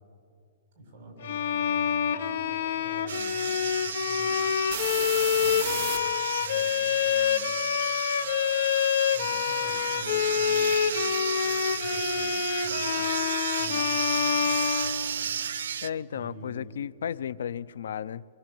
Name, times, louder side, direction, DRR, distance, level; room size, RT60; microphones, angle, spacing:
voice 1, 0.7-4.8 5.4-7.9 9.1-13.2 13.6-15.4 16.1-16.7, right 1 dB, 40° right, 2 dB, 8.0 m, -47 dB
Bowed string instrument, 1.2-15.5, left 8 dB, 60° left, 0.9 m, -27 dB
sound 1, 3.1-15.9, right 8 dB, 80° right, 0.7 m, -33 dB
sound 2, 3.6-3.7 4.1-6.0 14.3-14.4 14.8-16.5, right 8 dB, 20° right, 1.7 m, -36 dB
voice 2, 15.8-18.2, left 8 dB, 85° left, 20 dB, 0.6 m, -34 dB
28.0 x 23.5 x 7.7 m, 2.3 s
hypercardioid pair, 175°, 0 cm